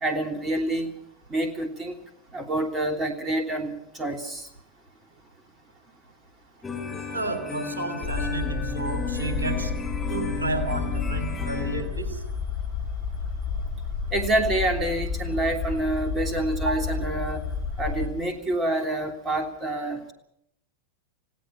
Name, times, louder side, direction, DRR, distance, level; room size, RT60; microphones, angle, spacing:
voice 1, 0.0-0.9 1.3-1.9 2.3-3.7 4.0-4.4 14.1-17.4 17.8-20.1, right 1 dB, 20° right, 5 dB, 3.1 m, -27 dB
sound 1, 6.6-11.8, left 5 dB, 15° left, 5.4 m, -34 dB
voice 2, 7.1-9.7 10.1-12.2 16.6-16.8, right 3 dB, 75° right, 8 dB, 3.1 m, -31 dB
sound 2, 8.0-18.1, left 5 dB, 35° left, 7.3 m, -31 dB
28.5 x 17.0 x 5.9 m, 0.73 s
figure-of-eight pair, 90°, 0 cm